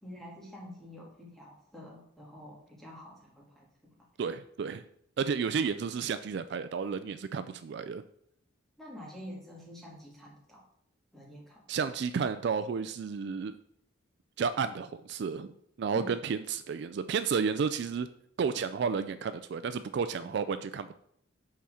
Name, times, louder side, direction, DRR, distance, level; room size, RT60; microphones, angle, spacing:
voice 1, 0.0-3.9 8.8-10.7 11.1-11.7 15.9-16.1 20.2-20.4, left 1 dB, ahead, -3 dB, 1.7 m, -47 dB
voice 2, 4.2-4.8 5.2-8.0 11.7-13.6 14.4-15.5 15.8-18.1 18.4-20.9, right 6 dB, 55° right, 12 dB, 0.3 m, -32 dB
5.8 x 4.2 x 6.3 m, 0.71 s
head